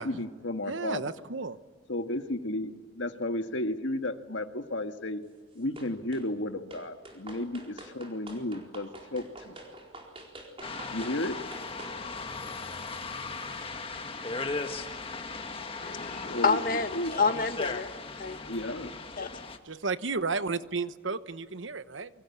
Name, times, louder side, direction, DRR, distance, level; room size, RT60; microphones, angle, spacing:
voice 1, 0.0-1.1 1.9-5.2 5.5-9.5 10.9-11.4 16.3-17.1 18.5-19.0, left 1 dB, 70° left, 7 dB, 1.7 m, -33 dB
voice 2, 0.6-1.6 19.7-22.1, right 4 dB, 70° right, 13 dB, 1.1 m, -33 dB
sound 1, 5.8-6.3 6.7-12.0, right 1 dB, 30° right, 4.3 m, -47 dB
sound 2, 10.6-19.6, left 3 dB, 30° left, 1.6 m, -37 dB
voice 3, 15.8-17.9 18.2-18.4 19.2-19.4, left 4 dB, 45° left, 9 dB, 1.5 m, -28 dB
28.5 x 24.0 x 8.5 m, 1.5 s
head